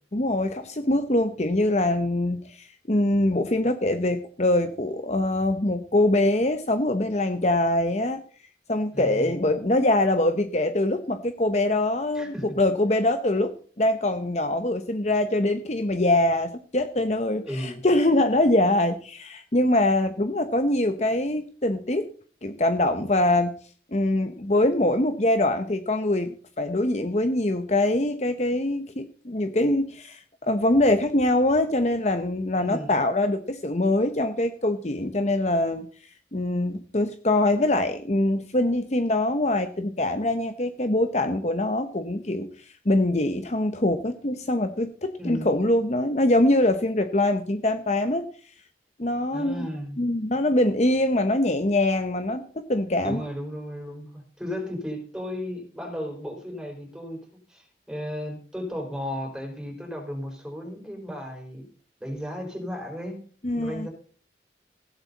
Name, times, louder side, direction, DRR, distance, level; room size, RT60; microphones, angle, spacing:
voice 1, 0.1-8.2 8.7-22.1 22.4-23.5 23.9-35.9 36.3-48.2 49.0-49.7 50.0-53.2 63.4-63.9, left 1 dB, 35° left, 8 dB, 0.9 m, -23 dB
voice 2, 8.9-9.3 12.1-12.6 17.4-17.8 32.5-32.9 45.2-45.6 49.3-50.0 53.0-57.2 57.5-61.6 62.0-63.2 63.5-63.9, equal, 5° right, 2 dB, 5.0 m, -34 dB
16.0 x 12.0 x 4.1 m, 0.43 s
head